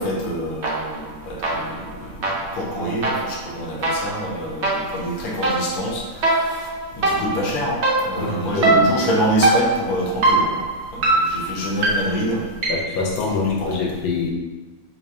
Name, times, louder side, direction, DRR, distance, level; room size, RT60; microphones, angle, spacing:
voice 1, 0.0-1.8 2.5-6.0 6.3-6.7 6.9-10.6 10.9-12.4 13.3-13.9, equal, 60° left, -2 dB, 1.0 m, -26 dB
sound 1, 0.6-1.1 1.4-13.0, right 2 dB, 75° right, 0.6 m, -23 dB
voice 2, 8.2-8.9 12.7-14.3, left 4 dB, 80° left, -1 dB, 1.4 m, -25 dB
3.8 x 3.1 x 2.6 m, 1.2 s
omnidirectional pair, 2.1 m